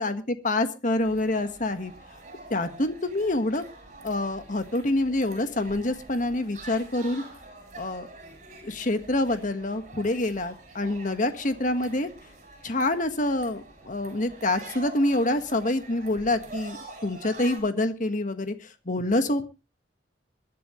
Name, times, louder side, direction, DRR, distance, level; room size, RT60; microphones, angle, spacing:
voice 1, 0.0-1.9 2.5-3.6 4.0-7.2 7.7-8.1 8.6-12.1 12.6-19.5, left 2 dB, 45° left, 9 dB, 1.5 m, -26 dB
sound 1, 1.0-17.6, right 2 dB, 40° right, 7.3 m, -46 dB
22.5 x 11.5 x 3.1 m, 0.30 s
head